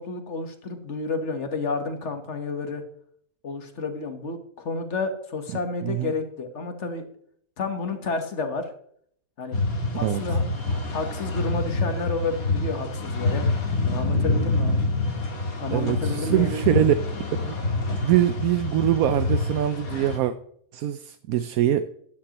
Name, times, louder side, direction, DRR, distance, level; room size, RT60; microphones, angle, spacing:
voice 1, 0.0-2.8 3.4-7.1 7.6-8.7 9.4-9.6 9.9-10.4 10.7-13.5 13.8-14.8 15.6-16.9, left 3 dB, 55° left, 7 dB, 1.6 m, -30 dB
voice 2, 5.8-6.1 10.0-10.2 15.7-16.9 17.4-17.6 18.0-20.3 20.7-22.0, right 12 dB, 80° right, 11 dB, 1.0 m, -23 dB
sound 1, 9.5-20.2, left 2 dB, 75° left, 2.2 m, -26 dB
12.0 x 9.8 x 3.0 m, 0.64 s
omnidirectional pair, 1.5 m